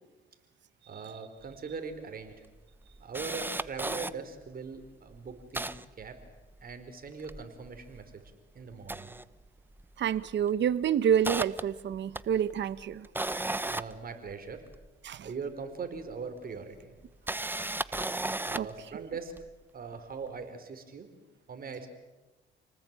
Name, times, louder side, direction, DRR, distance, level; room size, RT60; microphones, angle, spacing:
voice 1, 0.9-2.3 3.0-6.1 6.6-8.2 8.5-9.1 13.7-14.6 15.2-16.9 18.4-19.3 19.7-21.1 21.5-21.9, right 5 dB, 45° right, 7 dB, 4.6 m, -41 dB
Camera, 1.5-1.6 1.9-2.0 2.5-4.1 4.7-4.9 5.1-6.7 7.1-8.3 8.7-9.9 10.1-10.4 10.8-14.9 16.0-16.1 17.0-18.8 19.4-19.5, right 2 dB, 10° right, 1.0 m, -35 dB
voice 2, 10.0-13.1 15.0-15.3 18.5-18.7, right 9 dB, 65° right, 15 dB, 1.2 m, -28 dB
29.5 x 19.5 x 9.1 m, 1.1 s
cardioid pair, 90°, 20 cm